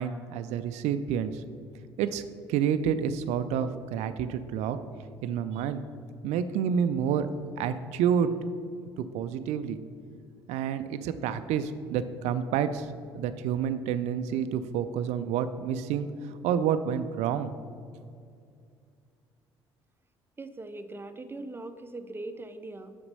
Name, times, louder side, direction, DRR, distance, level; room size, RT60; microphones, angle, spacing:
voice 1, 0.0-1.4 2.0-2.2 2.5-4.8 5.2-5.8 6.2-7.3 7.6-8.3 9.0-9.8 10.5-17.5, right 8 dB, 60° right, 11 dB, 0.4 m, -29 dB
voice 2, 20.4-23.0, right 2 dB, 15° right, 10 dB, 0.6 m, -40 dB
6.8 x 5.2 x 5.3 m, 2.3 s
hypercardioid pair, 50°, 13 cm